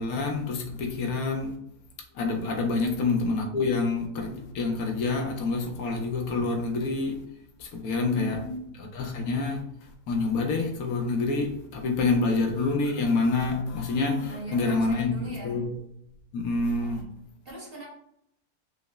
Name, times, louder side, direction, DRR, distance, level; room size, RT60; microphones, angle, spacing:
voice 1, 0.0-1.6 2.1-7.2 7.6-8.4 8.9-9.6 10.1-15.1 15.4-15.7 16.3-17.0, left 3 dB, 85° left, 1.1 m, -27 dB
voice 2, 8.0-8.6 14.2-15.7 16.8-17.1 17.4-17.9, right 2 dB, 45° right, 1.0 m, -38 dB
5.0 x 2.0 x 2.2 m
omnidirectional pair, 1.5 m